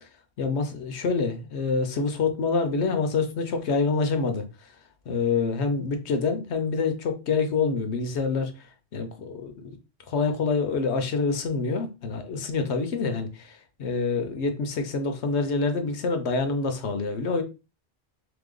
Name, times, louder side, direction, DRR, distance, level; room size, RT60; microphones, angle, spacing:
voice 1, 0.4-4.7 5.1-8.5 8.9-9.8 10.1-17.4, left 4 dB, 90° left, 1.1 m, -26 dB
3.4 x 3.0 x 3.7 m
omnidirectional pair, 1.1 m